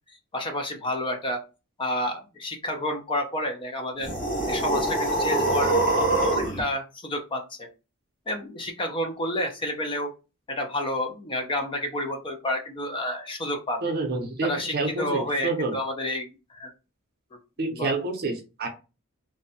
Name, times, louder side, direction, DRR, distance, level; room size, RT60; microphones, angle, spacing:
voice 1, 0.1-1.4 1.8-4.1 4.5-7.7 8.3-10.1 10.5-13.8 14.4-16.7 17.3-17.4 17.8-17.9, left 1 dB, 25° left, 4 dB, 0.4 m, -30 dB
sound 1, 4.0-6.6, right 2 dB, 40° left, 1.1 m, -24 dB
voice 2, 13.8-15.7 17.6-18.7, right 3 dB, 45° right, 3 dB, 0.6 m, -28 dB
2.5 x 2.1 x 2.6 m, 0.31 s
head